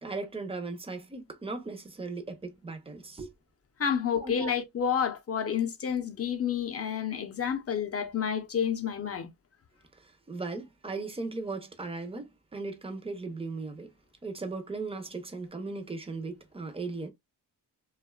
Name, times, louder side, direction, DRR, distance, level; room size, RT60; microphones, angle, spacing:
voice 1, 0.0-3.3 4.1-4.5 10.0-13.9 14.2-17.1, right 3 dB, 15° right, 0.6 m, -37 dB
voice 2, 3.8-9.3, left 7 dB, 35° left, 0.6 m, -29 dB
2.6 x 2.3 x 2.2 m
cardioid pair, 90°, 40 cm